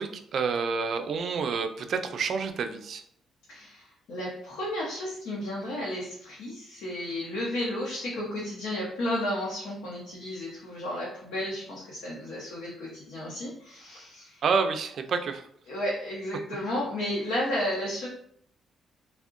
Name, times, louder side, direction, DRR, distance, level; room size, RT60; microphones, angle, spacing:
voice 1, 0.0-3.0 14.4-15.4, right 5 dB, 60° right, 7 dB, 0.3 m, -28 dB
voice 2, 4.1-14.4 15.6-18.1, left 1 dB, 85° left, -5 dB, 0.7 m, -33 dB
3.5 x 2.1 x 2.4 m, 0.66 s
cardioid pair, 90°, 0 cm